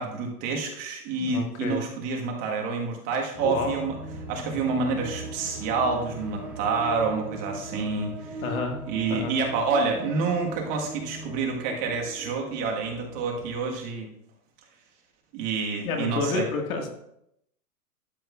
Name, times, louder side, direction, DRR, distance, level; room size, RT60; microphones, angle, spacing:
voice 1, 0.0-3.9 4.3-8.4 8.9-14.1 15.3-16.5, right 4 dB, 35° right, 1 dB, 1.5 m, -28 dB
voice 2, 1.2-1.8 3.4-3.7 8.4-8.8 9.1-9.3 15.8-16.9, left 4 dB, 60° left, 3 dB, 1.9 m, -29 dB
sound 1, 3.3-13.6, right 2 dB, 5° right, 0.4 m, -39 dB
12.0 x 7.8 x 2.4 m, 0.77 s
hypercardioid pair, 140°, 47 cm